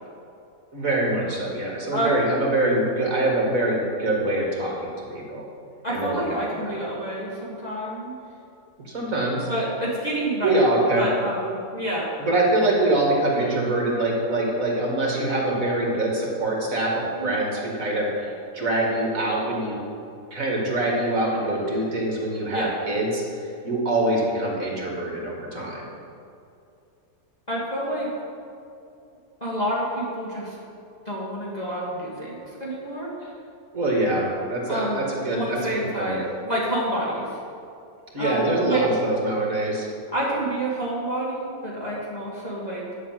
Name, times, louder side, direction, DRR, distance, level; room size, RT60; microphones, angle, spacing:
voice 1, 0.7-5.4 5.9-6.8 8.8-9.5 10.4-11.0 12.2-19.8 20.3-25.8 33.7-36.2 38.1-39.9, right 1 dB, 55° right, -2 dB, 2.8 m, -24 dB
voice 2, 5.8-8.1 9.5-10.7 10.9-12.1 17.2-17.4 22.5-22.7 27.5-28.1 29.4-30.6 31.1-33.1 34.7-37.3 38.2-38.8 40.1-42.9, right 1 dB, 25° left, -7 dB, 2.2 m, -28 dB
10.0 x 8.3 x 7.7 m, 2.5 s
omnidirectional pair, 1.7 m